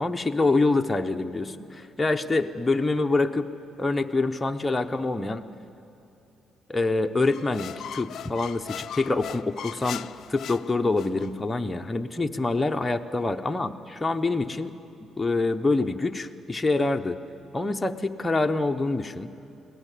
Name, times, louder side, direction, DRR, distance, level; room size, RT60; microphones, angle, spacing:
voice 1, 0.0-3.5 3.8-5.4 6.7-10.0 10.3-14.7 15.2-17.2 17.5-19.3, left 3 dB, 20° left, 5 dB, 0.8 m, -26 dB
sound 1, 7.2-11.3, left 9 dB, 70° left, 0.4 m, -39 dB
21.5 x 17.5 x 8.4 m, 2.9 s
cardioid pair, 90°, 0 cm